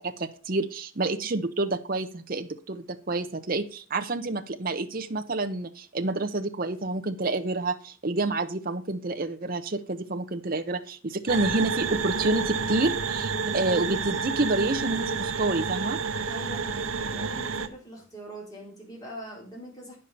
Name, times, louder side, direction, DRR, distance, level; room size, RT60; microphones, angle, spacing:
voice 1, 0.0-16.0, right 2 dB, 45° right, 7 dB, 0.8 m, -28 dB
sound 1, 11.3-17.7, right 5 dB, 75° right, 0.8 m, -29 dB
voice 2, 16.3-20.0, equal, 20° left, -3 dB, 4.1 m, -42 dB
9.9 x 5.6 x 6.8 m, 0.39 s
head